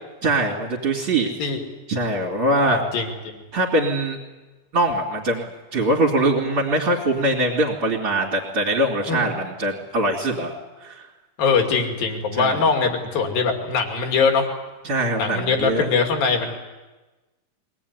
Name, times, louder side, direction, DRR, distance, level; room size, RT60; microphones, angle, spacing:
voice 1, 0.2-1.3 1.9-2.8 3.5-4.2 4.7-10.6 10.8-11.1 12.3-12.6 14.8-15.9, right 1 dB, 35° right, -1 dB, 3.8 m, -22 dB
voice 2, 1.2-1.6 2.6-3.3 9.1-9.3 11.4-14.5 15.2-16.6, left 5 dB, 70° left, 3 dB, 4.3 m, -22 dB
23.0 x 19.5 x 9.8 m, 1.2 s
omnidirectional pair, 4.4 m